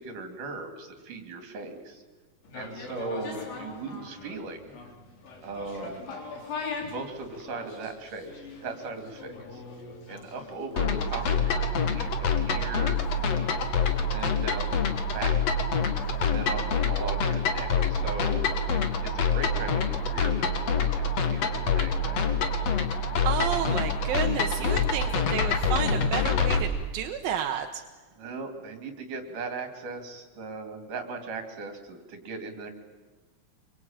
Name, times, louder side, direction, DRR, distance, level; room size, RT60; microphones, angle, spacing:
voice 1, 0.0-2.0 2.5-4.8 5.4-6.2 6.8-8.3 8.6-9.6 10.1-13.0 14.0-14.8 15.1-15.4 16.2-18.4 18.7-21.1 21.3-22.2 28.1-32.7, right 3 dB, 65° right, 6 dB, 4.5 m, -38 dB
sound 1, 2.4-20.6 20.9-21.0, left 4 dB, 75° left, 5.4 m, -43 dB
sound 2, 10.8-26.6, left 4 dB, 50° left, 2.8 m, -26 dB
voice 2, 23.2-27.8, right 9 dB, 85° right, 5 dB, 3.0 m, -31 dB
26.5 x 23.5 x 9.1 m, 1.3 s
omnidirectional pair, 4.1 m